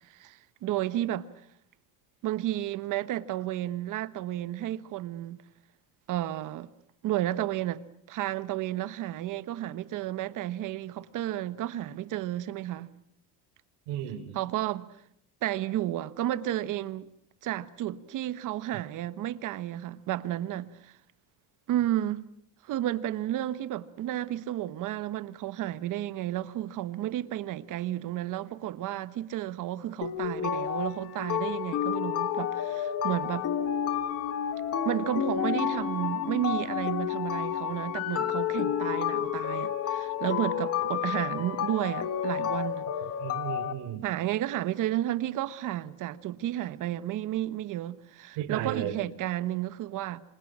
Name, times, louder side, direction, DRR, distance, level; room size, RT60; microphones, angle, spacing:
voice 1, 0.1-1.3 2.2-5.4 6.1-6.7 7.0-7.8 8.1-12.9 14.3-14.9 15.4-17.1 17.4-20.9 21.7-22.2 22.6-33.5 34.8-42.8 44.0-50.2, right 13 dB, 50° right, 1.2 m, -32 dB
voice 2, 13.9-14.4 43.2-44.1 48.4-49.0, right 10 dB, 75° right, 3.6 m, -34 dB
sound 1, 30.0-43.7, left 9 dB, 35° left, 1.6 m, -30 dB
27.0 x 26.5 x 6.2 m
cardioid pair, 160°, 41 cm